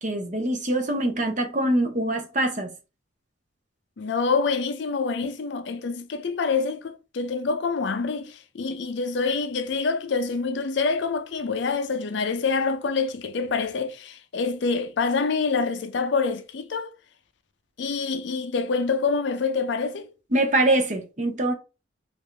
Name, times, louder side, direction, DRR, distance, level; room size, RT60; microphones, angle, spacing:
voice 1, 0.0-2.7 20.3-21.5, right 1 dB, 40° right, 0.7 m, -24 dB
voice 2, 4.0-16.9 17.8-20.1, left 4 dB, 65° left, 0.4 m, -26 dB
3.4 x 2.5 x 3.3 m
head